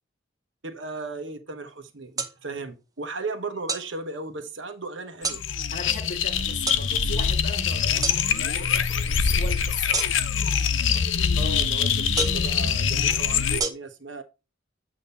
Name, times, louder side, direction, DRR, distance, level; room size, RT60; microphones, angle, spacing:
voice 1, 0.6-5.4 11.4-14.2, right 3 dB, 65° right, 1.1 m, -36 dB
sound 1, 2.2-2.3 3.7-3.9 5.2-5.4 6.7-6.8 8.0-8.2 9.9-10.4 12.2-12.5 13.6-13.7, right 4 dB, 20° right, 0.7 m, -28 dB
sound 2, 5.2-13.6, left 7 dB, 70° left, 0.7 m, -24 dB
voice 2, 5.7-10.1, left 4 dB, 40° left, 1.0 m, -37 dB
8.7 x 2.9 x 5.4 m
head